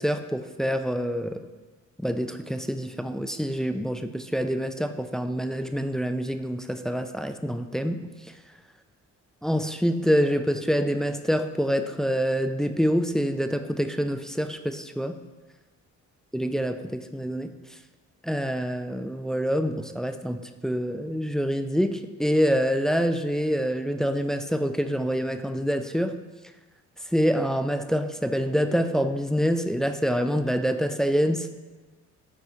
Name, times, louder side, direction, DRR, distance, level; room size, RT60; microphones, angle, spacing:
voice 1, 0.0-1.4 2.0-8.0 9.4-15.1 16.3-17.5 18.2-26.1 27.1-31.5, equal, ahead, 8 dB, 0.4 m, -26 dB
11.0 x 4.3 x 3.6 m, 1.3 s
cardioid pair, 90°, 30 cm